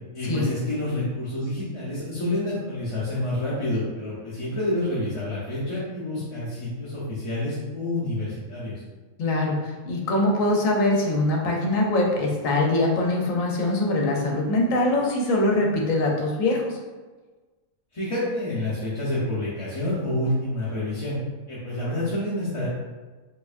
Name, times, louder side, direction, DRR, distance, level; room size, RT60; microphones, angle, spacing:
voice 1, 0.1-8.8 17.9-21.2 21.5-22.7, left 1 dB, 30° left, -10 dB, 0.7 m, -28 dB
voice 2, 9.2-16.8, left 2 dB, 70° left, -1 dB, 1.1 m, -23 dB
4.5 x 2.7 x 2.5 m, 1.3 s
omnidirectional pair, 1.5 m